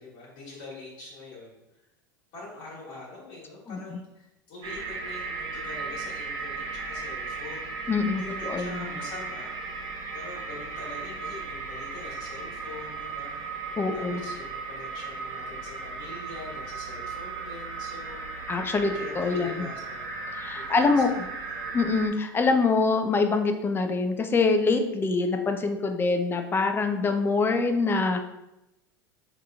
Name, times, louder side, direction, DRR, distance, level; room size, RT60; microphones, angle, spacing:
voice 1, 0.0-1.6 2.3-7.7 8.1-9.8 10.1-13.6 13.9-18.4 18.9-21.0 21.5-21.8, left 3 dB, 55° left, -7 dB, 1.5 m, -44 dB
voice 2, 3.7-4.0 7.9-8.9 13.8-14.2 18.5-19.7 20.3-21.2 21.7-28.2, left 4 dB, 20° left, 6 dB, 0.5 m, -25 dB
sound 1, 4.6-22.1, right 4 dB, 45° right, 0.8 m, -36 dB
4.7 x 2.9 x 2.3 m, 0.91 s
hypercardioid pair, 80°, 12 cm